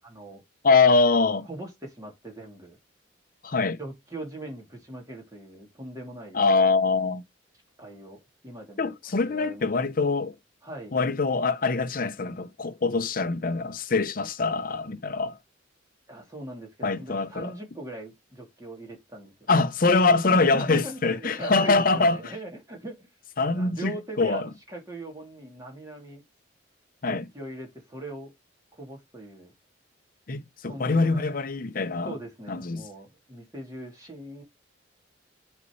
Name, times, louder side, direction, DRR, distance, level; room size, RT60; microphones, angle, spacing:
voice 1, 0.1-0.4 1.5-2.8 3.8-6.4 7.8-8.9 9.2-10.0 10.6-11.0 16.1-19.5 20.3-23.1 23.5-26.2 27.1-28.3 28.7-29.5 30.6-31.3 32.0-34.4, right 1 dB, 20° right, 2.9 m, -40 dB
voice 2, 0.6-1.5 3.4-3.8 6.3-7.2 8.8-10.3 10.9-15.4 16.8-17.5 19.5-22.3 23.4-24.5 27.0-27.2 30.3-32.1 32.5-32.9, left 3 dB, 45° left, 0.7 m, -24 dB
8.8 x 4.3 x 3.1 m
head